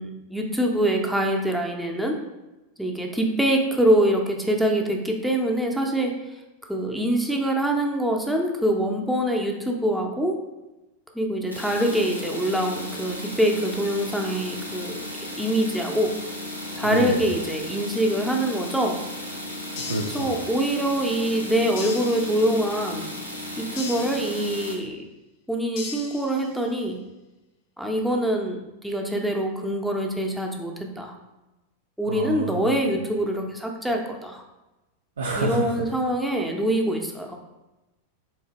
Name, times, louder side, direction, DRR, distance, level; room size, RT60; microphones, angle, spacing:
voice 1, 0.0-2.2 2.8-6.1 6.7-10.4 11.1-15.0 15.4-16.1 16.8-19.0 20.1-23.1 23.6-25.0 25.5-27.0 27.8-31.1 32.0-34.4 35.4-37.4, right 1 dB, ahead, 0 dB, 0.5 m, -24 dB
sound 1, 11.5-24.7, left 1 dB, 90° left, 0.6 m, -35 dB
voice 2, 16.8-17.3 19.7-20.3 32.1-32.7 35.2-35.9, right 2 dB, 70° right, 0 dB, 0.3 m, -29 dB
sound 2, 19.8-20.8 21.8-22.8 23.8-24.8 25.8-26.8, left 5 dB, 45° left, 0.5 m, -39 dB
3.8 x 2.7 x 2.9 m, 1.0 s
figure-of-eight pair, 90°, 0 cm